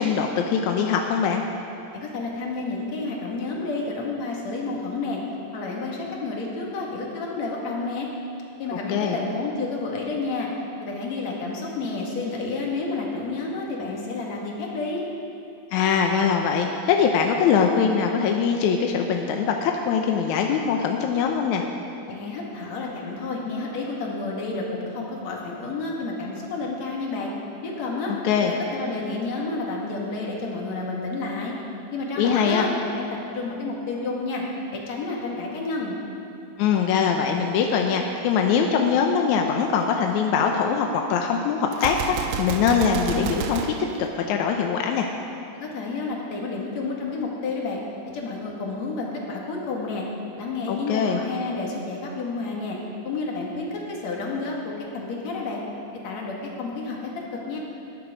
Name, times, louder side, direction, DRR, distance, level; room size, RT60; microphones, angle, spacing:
voice 1, 0.0-1.5 8.9-9.2 15.7-21.7 28.2-28.5 32.2-32.7 36.6-43.8 44.2-45.1 50.7-51.2, left 6 dB, 75° left, 3 dB, 1.8 m, -22 dB
voice 2, 1.9-5.2 5.5-8.1 8.6-10.5 10.8-15.0 22.0-27.3 27.6-28.1 28.4-31.5 31.9-34.4 34.7-36.0 45.5-47.8 48.1-50.1 50.4-52.8 53.0-55.6 56.0-57.0 57.5-57.6, left 3 dB, 55° left, -2 dB, 3.0 m, -30 dB
Gunshot gunfire, 41.7-44.8, right 8 dB, 90° right, 2.5 m, -31 dB
19.5 x 11.0 x 5.1 m, 2.7 s
omnidirectional pair, 4.1 m